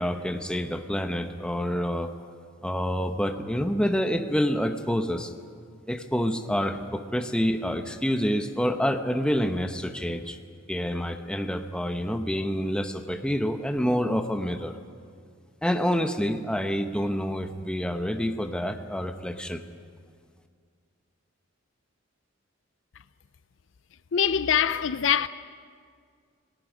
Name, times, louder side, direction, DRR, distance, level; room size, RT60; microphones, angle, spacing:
voice 1, 0.0-2.1 2.6-5.3 5.9-10.4 10.7-14.8 15.6-19.6, equal, 5° left, 0.9 m, -27 dB
voice 2, 24.1-25.3, left 8 dB, 65° left, 0.5 m, -23 dB
29.5 x 19.0 x 5.1 m
head